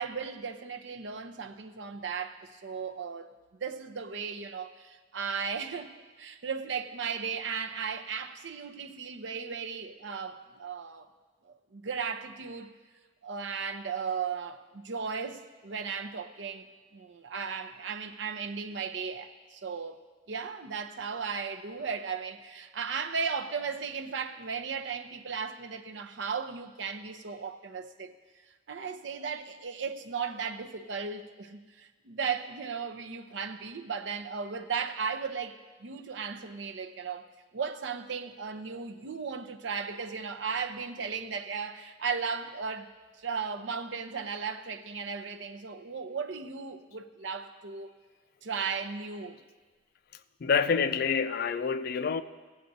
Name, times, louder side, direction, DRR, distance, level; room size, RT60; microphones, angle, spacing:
voice 1, 0.0-3.3 3.6-11.1 11.4-12.7 13.2-28.1 28.7-37.3 37.5-47.9 48.4-49.4, right 5 dB, 70° right, 0.6 m, -36 dB
voice 2, 50.4-52.2, left 6 dB, 50° left, 0.4 m, -27 dB
19.0 x 7.9 x 2.7 m
head